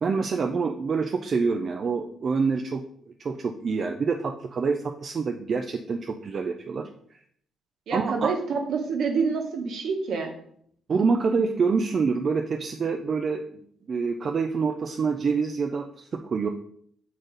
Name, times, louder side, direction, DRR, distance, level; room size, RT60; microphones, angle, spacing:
voice 1, 0.0-2.8 3.2-6.8 7.9-8.3 10.9-13.4 13.9-16.5, right 5 dB, 35° right, 5 dB, 0.4 m, -26 dB
voice 2, 7.9-10.3, right 5 dB, 55° right, 3 dB, 1.2 m, -27 dB
7.9 x 4.0 x 3.9 m, 0.65 s
cardioid pair, 175°, 0 cm